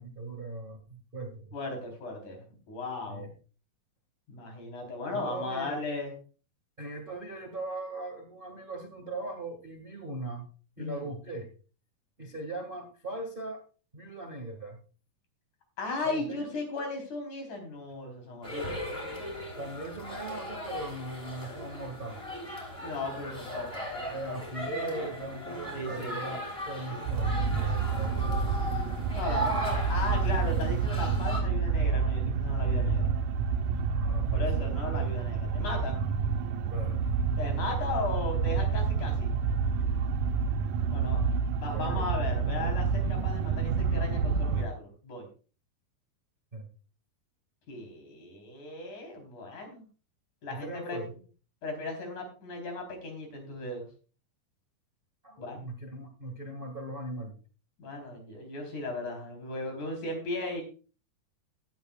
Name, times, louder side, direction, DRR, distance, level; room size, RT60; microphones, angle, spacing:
voice 1, 0.0-1.5 3.1-3.3 5.1-5.8 6.8-10.5 10.8-11.5 12.2-13.6 13.9-14.8 16.0-16.4 19.6-22.2 24.1-28.6 32.7-33.0 34.0-34.4 36.7-37.1 40.9-41.3 41.7-42.2 46.5-46.7 50.5-51.1 55.2-57.3, right 2 dB, 35° right, 4 dB, 0.9 m, -39 dB
voice 2, 1.5-3.3 4.3-6.1 10.8-11.1 15.8-18.8 22.8-24.4 25.7-26.2 29.2-29.5 29.9-33.1 34.3-36.0 37.4-39.3 40.9-41.2 41.6-45.3 47.7-49.9 50.4-51.0 51.6-53.9 55.4-55.6 57.8-60.6, left 3 dB, 55° left, 3 dB, 5.1 m, -36 dB
sound 1, 18.4-31.4, equal, 10° left, 3.7 m, -37 dB
sound 2, 27.1-44.7, right 5 dB, 70° right, 2.1 m, -28 dB
16.5 x 11.5 x 2.4 m, 0.36 s
omnidirectional pair, 4.2 m